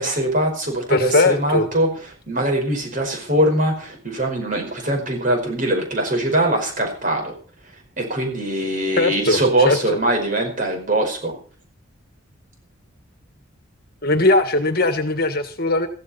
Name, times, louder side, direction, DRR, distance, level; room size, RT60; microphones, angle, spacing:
voice 1, 0.0-1.9 2.3-7.4 8.0-11.4, right 1 dB, 40° right, 2 dB, 5.1 m, -22 dB
voice 2, 0.9-1.7 9.0-10.0 14.0-15.9, left 2 dB, 45° left, 8 dB, 1.7 m, -19 dB
15.0 x 15.0 x 4.3 m, 0.39 s
head